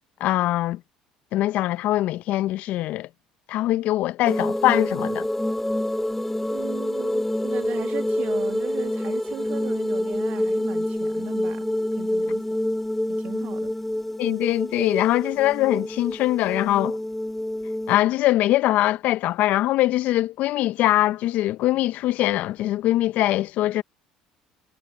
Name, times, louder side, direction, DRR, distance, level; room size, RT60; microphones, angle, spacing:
voice 1, 0.2-0.8 1.3-3.1 3.5-5.3 14.2-17.0 17.9-23.8, left 15 dB, 65° left, 1.0 m, -22 dB
sound 1, 4.2-18.0, left 1 dB, 5° left, 2.4 m, -27 dB
voice 2, 6.5-12.6 13.1-13.7, right 12 dB, 60° right, 2.2 m, -38 dB
hypercardioid pair, 75°, 3 cm